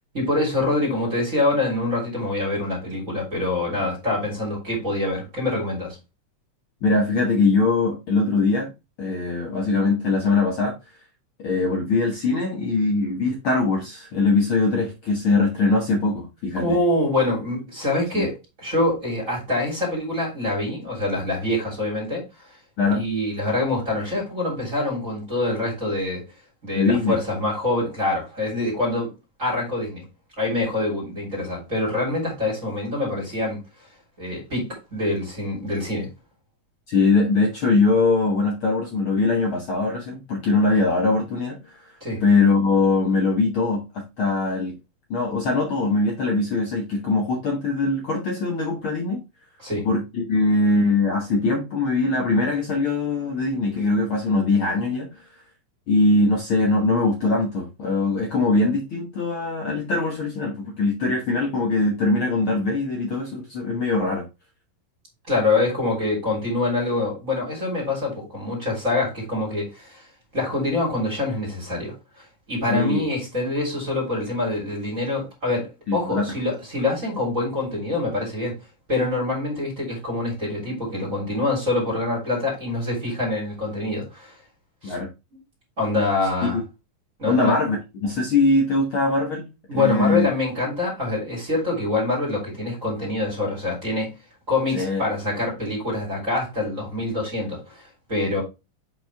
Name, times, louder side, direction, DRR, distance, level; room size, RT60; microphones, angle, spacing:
voice 1, 0.1-6.0 16.6-18.3 18.6-22.3 22.9-26.2 26.6-29.1 29.4-30.0 30.4-33.7 34.2-36.1 42.0-42.2 49.6-49.9 65.3-70.0 70.3-71.9 72.5-78.6 78.9-84.3 84.8-85.0 85.8-86.6 87.2-87.5 89.7-94.1 94.5-98.4, left 2 dB, 20° right, 3.5 m, -25 dB
voice 2, 6.8-8.7 9.0-10.8 11.4-16.8 18.1-18.3 22.8-23.0 26.8-27.2 36.9-41.9 42.2-44.7 45.1-49.2 49.8-55.3 55.9-64.3 72.7-73.0 75.9-76.2 84.8-85.1 86.4-86.6 87.2-87.8 88.0-90.3 94.7-95.0, left 3 dB, 65° left, 1.3 m, -22 dB
7.5 x 4.7 x 3.5 m
omnidirectional pair, 4.2 m